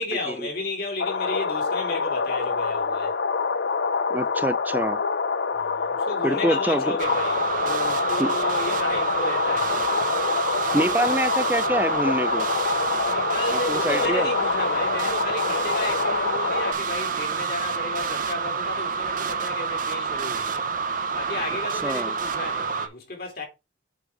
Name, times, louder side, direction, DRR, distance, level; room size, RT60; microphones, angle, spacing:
voice 1, 0.0-3.2 5.5-9.9 13.1-20.7 21.1-23.4, left 2 dB, 55° left, 3.1 m, -33 dB
sound 1, 1.0-16.7, left 5 dB, 70° left, 0.5 m, -26 dB
voice 2, 4.1-5.0 6.2-6.8 8.2-8.3 10.7-12.5 13.7-14.3 21.8-22.1, right 1 dB, 10° right, 0.4 m, -25 dB
sound 2, 7.0-22.9, right 5 dB, 45° right, 0.8 m, -28 dB
8.0 x 4.0 x 4.8 m
head